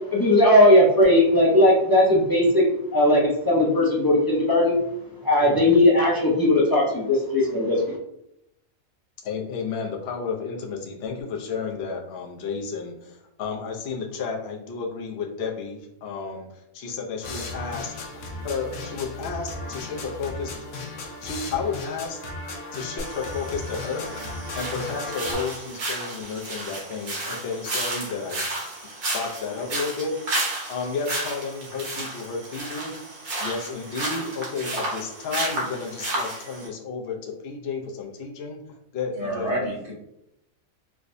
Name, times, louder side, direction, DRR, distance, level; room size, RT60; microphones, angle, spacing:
voice 1, 0.1-2.6 2.9-4.8 5.2-7.9, left 1 dB, 30° left, -4 dB, 0.4 m, -18 dB
voice 2, 9.2-20.5 21.2-22.2 22.7-24.1 24.5-28.5 29.1-30.1 30.7-32.9 33.4-39.5, left 5 dB, 55° left, 0 dB, 0.8 m, -32 dB
sound 1, 17.2-25.3, left 2 dB, 80° left, 1.1 m, -35 dB
sound 2, 23.0-36.7, right 2 dB, 90° right, 1.5 m, -32 dB
voice 3, 39.1-39.9, right 1 dB, 55° right, -8 dB, 2.0 m, -28 dB
4.7 x 2.2 x 2.5 m, 0.81 s
omnidirectional pair, 1.4 m